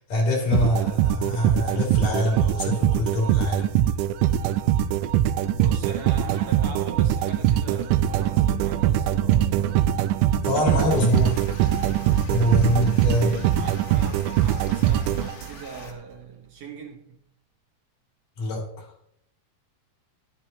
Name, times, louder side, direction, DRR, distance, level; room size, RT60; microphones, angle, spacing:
voice 1, 0.0-3.7 10.4-11.5 12.3-13.4 18.4-18.9, left 1 dB, 85° left, 4.3 m, -24 dB
sound 1, 0.5-15.8, right 12 dB, 85° right, 2.1 m, -22 dB
voice 2, 5.5-9.9 13.1-17.2, right 5 dB, 60° right, 2.3 m, -40 dB
sound 2, 10.9-15.9, left 5 dB, 60° left, 1.9 m, -45 dB
10.5 x 10.5 x 2.9 m
omnidirectional pair, 3.7 m